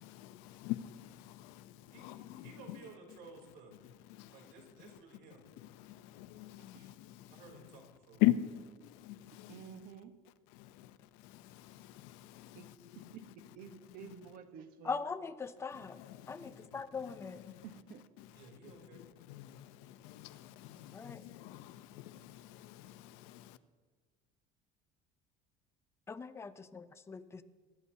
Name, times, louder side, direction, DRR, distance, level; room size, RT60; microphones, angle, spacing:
voice 1, 0.0-2.8 3.1-3.2 3.7-4.9 5.5-7.8 8.2-9.9 10.5-13.8 15.7-17.7 18.2-23.6, left 15 dB, 85° left, 0.6 m, -41 dB
voice 2, 1.9-3.7 4.3-5.4 7.3-8.2 16.4-16.7 18.3-19.1, right 4 dB, 75° right, 3.5 m, -55 dB
voice 3, 6.6-6.9 9.5-10.2 12.5-12.7 12.9-15.1 17.6-18.0, right 8 dB, 60° right, 1.2 m, -51 dB
voice 4, 14.8-16.0 16.3-17.4 20.9-21.2 26.1-27.4, left 4 dB, 15° left, 0.5 m, -41 dB
23.5 x 12.0 x 2.8 m
cardioid pair, 150°, 17 cm